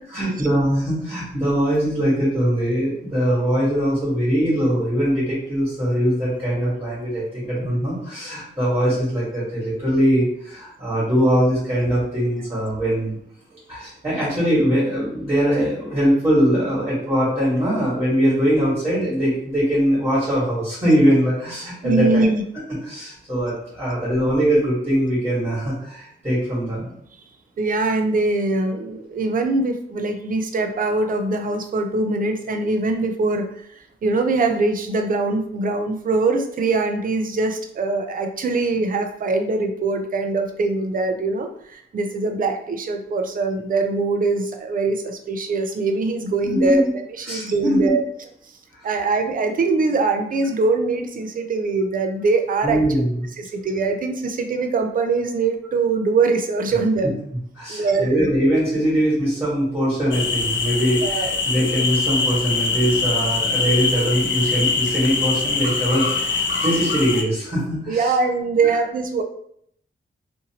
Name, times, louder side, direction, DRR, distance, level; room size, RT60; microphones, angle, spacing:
voice 1, 0.1-13.2 13.7-22.2 22.8-26.9 46.4-46.8 47.2-48.0 48.8-48.9 52.6-53.3 57.6-68.1, equal, 15° right, -8 dB, 1.4 m, -21 dB
voice 2, 21.8-22.4 27.6-33.7 34.0-48.0 48.8-52.8 53.4-57.2 57.7-58.3 61.0-61.4 67.9-69.2, right 3 dB, 45° right, 6 dB, 0.4 m, -22 dB
sound 1, 60.1-67.2, left 4 dB, 65° left, 0.5 m, -23 dB
2.7 x 2.6 x 2.8 m, 0.67 s
wide cardioid pair, 140°, 21 cm